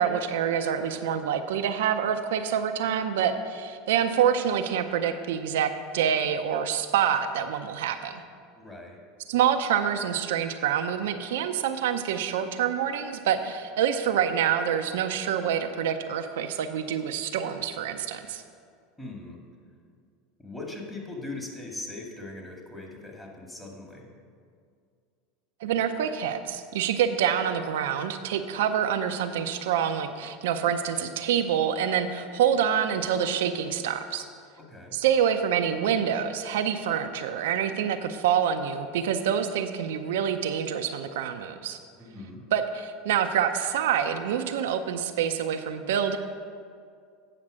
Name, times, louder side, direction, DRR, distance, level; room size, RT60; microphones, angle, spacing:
voice 1, 0.0-8.2 9.3-18.4 25.6-34.3 34.9-41.8 42.5-46.2, right 8 dB, 75° right, 7 dB, 0.5 m, -26 dB
voice 2, 8.6-9.0 19.0-19.4 20.4-24.1 34.7-34.9 42.0-42.4, left 2 dB, 15° left, 0 dB, 2.0 m, -40 dB
8.7 x 5.8 x 6.3 m, 2.2 s
hypercardioid pair, 90°, 0 cm